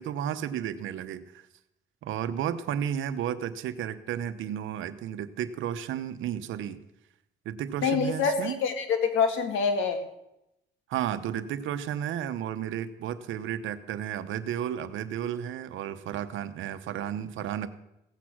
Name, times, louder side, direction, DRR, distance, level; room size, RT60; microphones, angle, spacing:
voice 1, 0.0-1.4 2.0-6.8 7.4-8.6 10.9-17.7, right 9 dB, 80° right, 11 dB, 1.0 m, -33 dB
voice 2, 7.8-10.0, left 5 dB, 80° left, 7 dB, 2.0 m, -26 dB
16.5 x 8.4 x 6.1 m, 0.86 s
cardioid pair, 90°, 20 cm